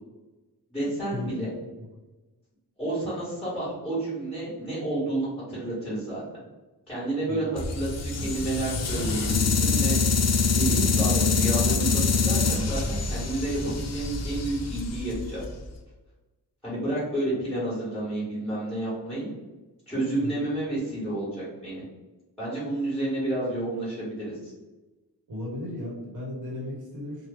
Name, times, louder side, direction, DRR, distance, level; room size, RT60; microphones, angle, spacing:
voice 1, 0.7-1.5 2.8-6.2 6.9-10.0 10.6-15.4 16.6-19.3 19.9-21.8 22.4-24.5, right 1 dB, ahead, -11 dB, 1.4 m, -30 dB
sound 1, 7.6-15.7, left 4 dB, 40° left, 0.4 m, -25 dB
voice 2, 25.3-27.3, left 1 dB, 50° right, -3 dB, 1.1 m, -35 dB
3.0 x 2.2 x 3.4 m, 1.1 s
wide cardioid pair, 150°, 41 cm